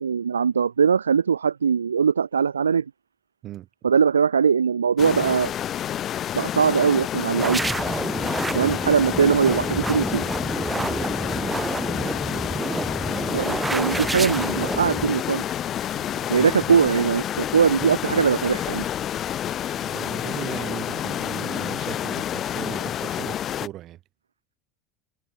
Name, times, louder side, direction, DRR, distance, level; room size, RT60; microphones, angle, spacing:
voice 1, 0.0-2.8 3.8-5.5 6.3-7.6 8.5-10.2 13.3-15.5 16.3-18.8, right 6 dB, 75° right, 0.5 m, -21 dB
sound 1, 5.0-23.7, left 10 dB, 35° left, 0.5 m, -29 dB
sound 2, 7.4-15.1, right 2 dB, 10° right, 0.7 m, -29 dB
voice 2, 15.9-16.5 19.7-24.0, right 14 dB, 45° right, 1.6 m, -38 dB
figure-of-eight pair, 70°, 0 cm